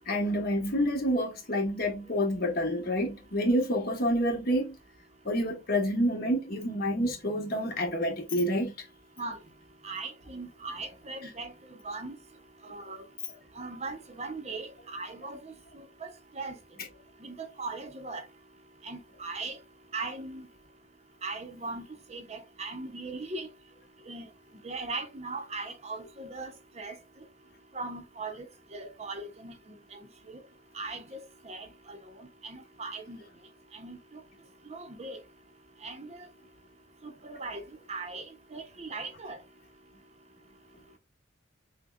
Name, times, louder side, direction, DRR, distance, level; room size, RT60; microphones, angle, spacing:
voice 1, 0.0-4.8 5.2-8.7, equal, 50° left, 1.2 m, -28 dB
voice 2, 9.8-12.2 12.6-13.0 13.6-16.5 17.2-18.2 18.8-19.6 19.9-20.5 21.2-21.8 22.1-23.5 24.1-24.3 24.6-27.0 27.7-29.5 29.9-30.0 30.3-30.4 30.7-33.2 33.7-34.0 34.7-35.2 35.8-36.3 37.0-37.6 37.9-38.3 38.5-39.4, right 3 dB, 35° right, 0.7 m, -39 dB
6.1 x 2.2 x 2.4 m
head